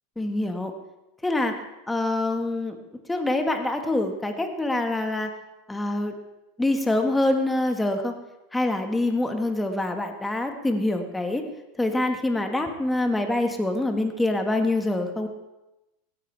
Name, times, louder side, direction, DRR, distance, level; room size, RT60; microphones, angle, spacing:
voice 1, 0.2-0.7 1.2-1.5 1.9-2.8 3.1-5.3 5.7-6.1 6.6-8.1 8.5-11.4 11.8-15.3, left 2 dB, 10° left, 5 dB, 1.5 m, -25 dB
16.5 x 9.8 x 3.4 m, 0.99 s
hypercardioid pair, 110°, 0 cm